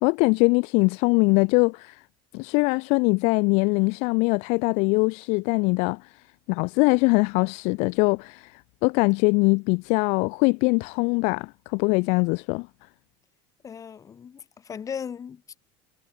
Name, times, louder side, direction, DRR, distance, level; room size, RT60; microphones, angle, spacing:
voice 1, 0.0-2.0 2.3-6.1 6.5-8.5 8.8-12.7, left 30 dB, 65° left, 1.4 m, -22 dB
voice 2, 13.6-15.6, left 7 dB, 25° left, 3.6 m, -37 dB
supercardioid pair, 130°, 12 cm